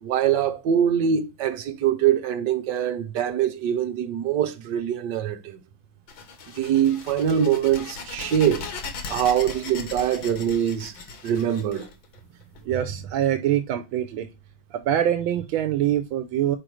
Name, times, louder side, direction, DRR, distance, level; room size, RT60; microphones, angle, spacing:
voice 1, 0.0-5.6 6.6-8.7 9.1-11.0 11.2-11.9, right 9 dB, 65° right, 1.5 m, -23 dB
sound 1, 6.1-12.6, left 4 dB, 80° left, 2.2 m, -38 dB
voice 2, 12.6-14.3 14.7-16.6, right 11 dB, 90° right, 1.5 m, -24 dB
5.1 x 4.8 x 6.2 m
omnidirectional pair, 2.2 m